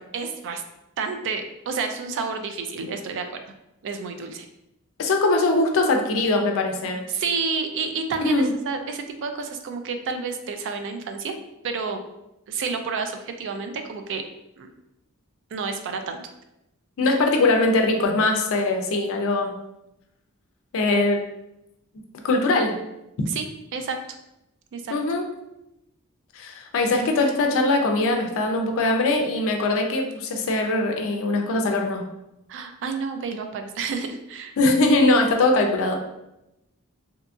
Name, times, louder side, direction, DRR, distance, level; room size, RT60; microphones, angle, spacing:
voice 1, 0.1-0.6 1.0-3.4 3.8-4.5 7.1-11.4 11.6-12.0 12.5-14.2 14.6-14.7 15.5-16.2 23.3-23.5 23.7-24.0 24.7-24.9 32.5-34.5, right 5 dB, 60° right, 7 dB, 0.3 m, -30 dB
voice 2, 5.0-7.0 8.2-8.5 17.0-19.5 20.7-21.2 22.2-22.8 24.9-25.2 26.4-32.0 34.6-36.0, left 2 dB, 65° left, 3 dB, 0.4 m, -21 dB
2.8 x 2.5 x 2.3 m, 0.89 s
head